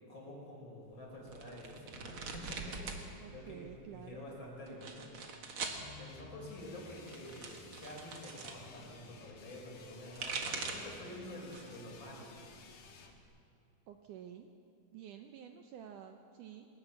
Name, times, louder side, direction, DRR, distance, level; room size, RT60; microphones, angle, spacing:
voice 1, 0.1-5.1 6.0-12.3, left 1 dB, 30° left, -2 dB, 5.4 m, -48 dB
sound 1, 1.3-3.0 3.3-4.0 4.7-5.8 6.8-8.6 9.9-11.0 11.4-11.9 12.2-13.2, right 4 dB, 50° right, 1.6 m, -43 dB
voice 2, 3.2-4.3 13.9-14.5 14.9-16.7, right 9 dB, 90° right, 5 dB, 1.8 m, -50 dB
sound 2, 5.7-13.1, left 4 dB, 60° left, 3.0 m, -55 dB
22.0 x 18.5 x 7.1 m, 2.5 s
omnidirectional pair, 4.7 m